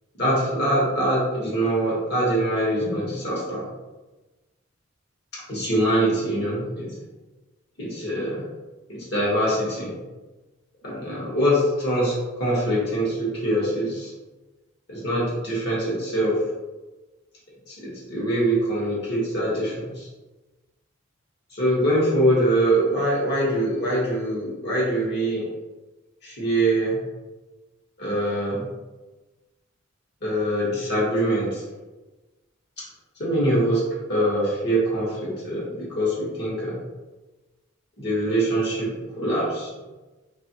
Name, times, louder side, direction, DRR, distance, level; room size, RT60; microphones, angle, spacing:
voice 1, 0.1-3.7 5.3-7.0 7.8-8.5 8.9-10.0 10.8-12.1 12.4-14.1 14.9-16.4 17.7-20.1 21.5-25.5 26.2-27.0 28.0-28.7 30.2-31.6 33.2-33.8 34.1-36.8 38.0-38.9 39.2-39.7, right 1 dB, 55° left, -6 dB, 1.0 m, -23 dB
3.0 x 2.4 x 2.8 m, 1.2 s
head